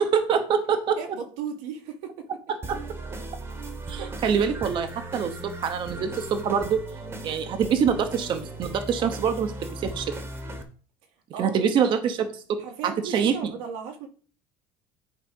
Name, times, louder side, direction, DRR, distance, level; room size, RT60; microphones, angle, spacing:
voice 1, 0.0-1.0 2.5-2.8 3.9-6.8 7.2-10.1 11.4-13.4, right 7 dB, 35° right, 0.8 m, -25 dB
voice 2, 1.0-2.4 4.0-4.4 11.3-11.9 12.6-14.1, right 6 dB, 90° right, 2.0 m, -37 dB
sound 1, 2.6-10.6, right 2 dB, 15° right, 1.1 m, -37 dB
10.5 x 4.7 x 5.3 m
cardioid pair, 180°, 15 cm